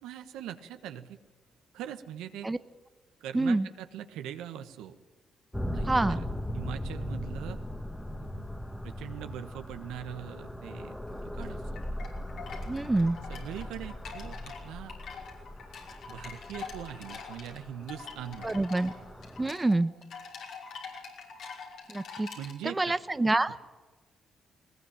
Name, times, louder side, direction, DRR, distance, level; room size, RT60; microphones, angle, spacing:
voice 1, 0.0-1.2 1.7-2.5 3.2-4.9 5.7-6.2 6.5-7.6 8.2-8.5 8.8-11.8 13.3-14.9 16.1-18.5 22.3-23.0, right 10 dB, 90° right, 8 dB, 1.4 m, -41 dB
voice 2, 3.3-3.7 5.8-6.2 12.7-13.2 18.4-18.9 19.4-19.9 21.9-22.3 22.6-23.6, right 2 dB, 20° right, 13 dB, 0.9 m, -27 dB
sound 1, 5.5-19.5, equal, 10° left, 1.8 m, -39 dB
sound 2, 11.1-22.5, left 5 dB, 75° left, 5.4 m, -45 dB
20.0 x 19.5 x 8.9 m, 1.3 s
supercardioid pair, 65°, 0 cm